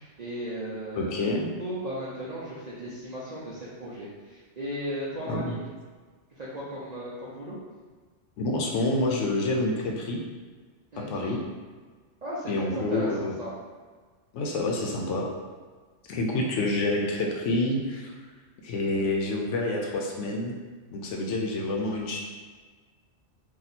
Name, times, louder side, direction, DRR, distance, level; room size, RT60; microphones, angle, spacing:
voice 1, 0.0-1.3 1.6-5.6 6.4-7.6 10.9-11.4 12.2-13.5, equal, 50° right, -8 dB, 0.5 m, -36 dB
voice 2, 0.9-1.5 5.3-5.5 8.4-10.2 11.1-11.4 12.5-13.3 14.3-15.3 16.1-18.1 18.6-20.6 20.9-22.2, left 2 dB, 75° left, 0 dB, 0.9 m, -28 dB
2.8 x 2.5 x 4.1 m, 1.4 s
omnidirectional pair, 1.3 m